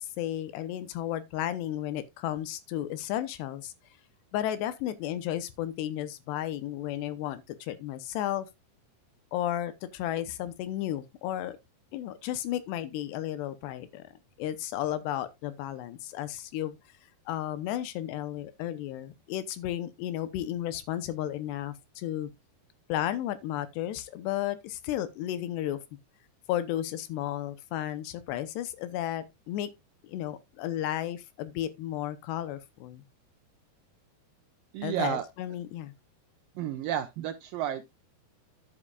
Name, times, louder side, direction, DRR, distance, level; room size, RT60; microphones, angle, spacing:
voice 1, 0.0-3.7 4.3-8.5 9.3-11.6 11.9-14.1 14.4-16.8 17.3-22.3 22.9-25.8 26.5-29.7 30.0-33.0 34.8-35.9, left 12 dB, 85° left, 3.0 m, -33 dB
voice 2, 34.7-35.2 36.6-37.9, right 11 dB, 85° right, 2.0 m, -31 dB
10.5 x 9.8 x 2.4 m
omnidirectional pair, 4.8 m